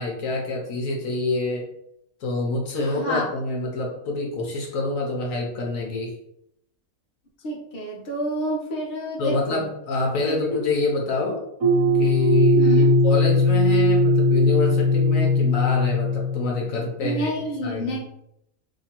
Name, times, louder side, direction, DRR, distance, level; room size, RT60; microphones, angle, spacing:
voice 1, 0.0-1.7 2.2-6.1 9.2-11.4 12.0-17.3 17.6-18.0, left 3 dB, 70° left, 0 dB, 1.1 m, -26 dB
voice 2, 2.7-3.3 7.4-9.6 10.2-10.6 12.6-12.9 17.0-18.0, equal, 45° left, -2 dB, 1.0 m, -29 dB
sound 1, 11.6-16.8, left 1 dB, 55° right, 1.0 m, -19 dB
2.9 x 2.7 x 4.2 m, 0.78 s
omnidirectional pair, 1.5 m